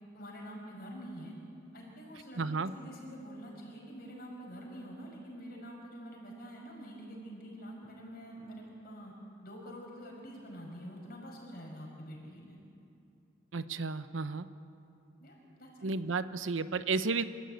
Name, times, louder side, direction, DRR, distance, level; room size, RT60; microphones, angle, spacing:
voice 1, 0.1-1.3 1.7-9.1 9.4-12.6 15.2-15.9, equal, 50° left, -1 dB, 6.1 m, -46 dB
voice 2, 2.4-2.7 13.5-14.5 15.8-17.2, right 4 dB, 85° right, 12 dB, 0.8 m, -32 dB
26.5 x 14.5 x 9.1 m, 2.6 s
head